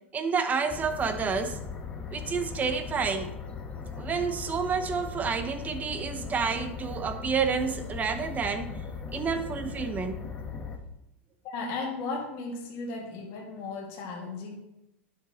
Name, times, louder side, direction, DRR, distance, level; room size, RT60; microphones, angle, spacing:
voice 1, 0.1-1.6 2.1-3.3 4.0-8.7 9.1-10.2, right 5 dB, 25° right, 9 dB, 0.9 m, -29 dB
sound 1, 0.7-10.8, left 5 dB, 15° left, 1.2 m, -38 dB
voice 2, 11.4-14.6, left 3 dB, 55° left, -2 dB, 2.2 m, -35 dB
11.0 x 6.8 x 3.0 m, 0.89 s
hypercardioid pair, 115°, 7 cm